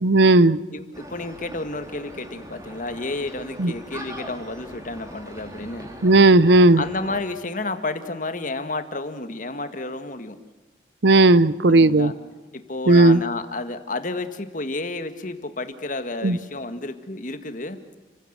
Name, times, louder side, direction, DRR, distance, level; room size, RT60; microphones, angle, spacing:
voice 1, 0.0-0.6 3.6-3.7 6.0-6.8 11.0-12.1 12.9-13.2 16.2-16.4, right 2 dB, 70° right, 18 dB, 0.7 m, -14 dB
voice 2, 0.7-5.9 6.8-10.4 11.7-12.1 12.7-17.8, left 2 dB, 45° left, 9 dB, 1.8 m, -31 dB
sound 1, 0.9-7.2, equal, 20° right, 2.9 m, -41 dB
30.0 x 16.0 x 8.0 m, 1.2 s
head